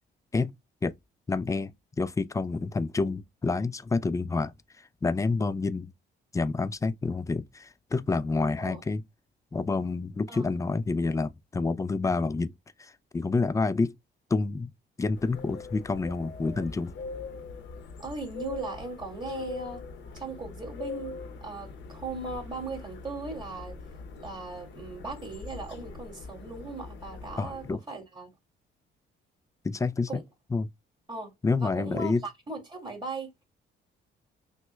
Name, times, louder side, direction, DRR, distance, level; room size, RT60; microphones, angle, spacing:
voice 1, 1.3-5.9 6.3-9.0 9.5-12.5 12.8-13.9 14.3-14.7 15.0-16.9 27.4-27.8 29.6-30.1 30.5-30.7 31.4-32.2, left 3 dB, 15° left, 0.3 m, -28 dB
sound 1, 15.1-27.7, left 4 dB, 70° left, 0.8 m, -42 dB
voice 2, 18.0-19.8 20.1-23.8 24.2-28.3 30.1-30.2 31.1-31.3 31.6-33.3, right 3 dB, 25° right, 2.1 m, -38 dB
5.8 x 2.2 x 2.2 m
cardioid pair, 90°, 20 cm